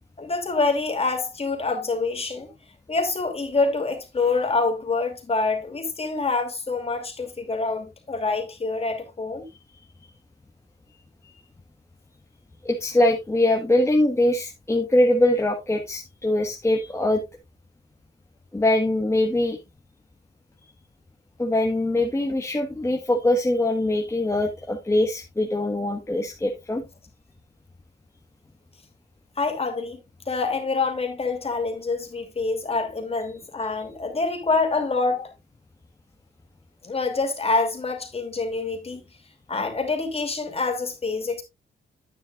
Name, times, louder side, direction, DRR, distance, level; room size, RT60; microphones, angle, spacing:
voice 1, 0.2-2.5 2.9-9.5 29.4-30.0 30.3-35.3 36.8-39.0 39.5-41.4, left 3 dB, 35° left, 2.8 m, -26 dB
voice 2, 12.6-17.2 18.5-19.6 21.4-26.8, left 1 dB, 15° left, 1.4 m, -22 dB
10.0 x 9.3 x 2.4 m
cardioid pair, 105°, 19 cm